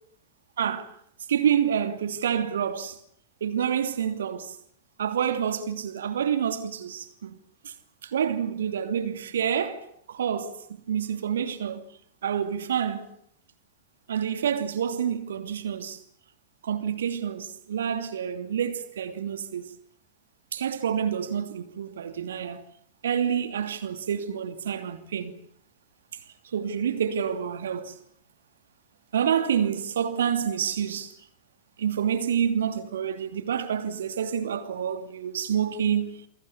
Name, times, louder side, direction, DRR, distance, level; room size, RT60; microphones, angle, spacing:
voice 1, 0.6-0.9 1.3-3.0 3.4-4.6 5.0-7.4 7.6-7.7 8.0-11.8 12.2-13.1 14.1-16.0 16.6-19.7 20.5-22.6 23.0-25.3 26.5-28.0 29.1-31.1 31.8-36.2, right 8 dB, 65° right, 2.8 m, -28 dB
29.0 x 22.5 x 7.2 m
figure-of-eight pair, 90°, 0 cm